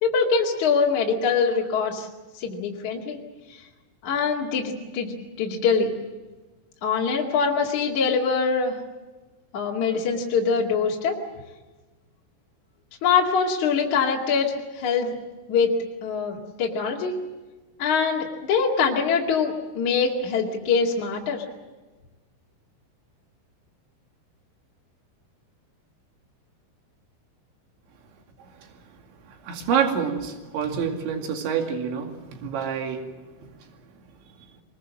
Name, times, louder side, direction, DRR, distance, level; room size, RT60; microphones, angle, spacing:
voice 1, 0.0-2.1 2.4-3.2 4.0-6.0 6.8-8.8 9.5-11.2 13.0-15.1 15.5-15.7 16.0-17.1 17.8-21.4, left 5 dB, 45° left, -2 dB, 3.0 m, -23 dB
voice 2, 29.3-33.1 33.4-33.5, right 7 dB, 65° right, 4 dB, 4.6 m, -27 dB
24.0 x 21.5 x 7.7 m, 1.2 s
omnidirectional pair, 5.9 m